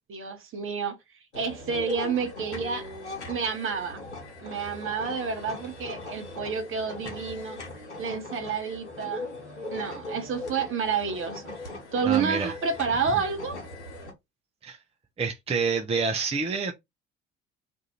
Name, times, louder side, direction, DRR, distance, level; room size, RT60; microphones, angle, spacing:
voice 1, 0.1-0.9 1.3-2.9 3.3-4.0 4.4-7.6 8.0-9.3 9.7-11.5 11.9-13.6, right 6 dB, 35° right, 1.1 m, -29 dB
sound 1, 1.3-14.1, left 2 dB, 85° left, 1.1 m, -40 dB
voice 2, 12.0-12.5 14.6-14.8 15.2-16.7, right 5 dB, 15° right, 0.6 m, -27 dB
2.7 x 2.5 x 4.2 m
figure-of-eight pair, 60°, 34 cm